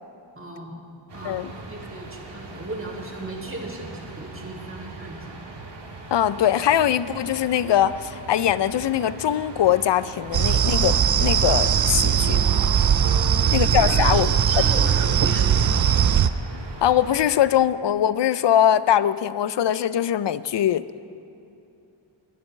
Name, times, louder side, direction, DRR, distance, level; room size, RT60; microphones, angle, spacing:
voice 1, 0.4-0.7 1.1-5.3 13.0-15.5, right 1 dB, 25° right, -2 dB, 2.5 m, -36 dB
sound 1, 1.1-17.3, right 2 dB, 55° right, 1.6 m, -40 dB
voice 2, 6.1-12.4 13.5-14.3 16.8-20.9, left 10 dB, 60° left, 16 dB, 0.5 m, -21 dB
sound 2, 10.3-16.3, right 8 dB, 40° right, 0.4 m, -20 dB
20.0 x 11.5 x 3.2 m, 2.7 s
wide cardioid pair, 60°, 49 cm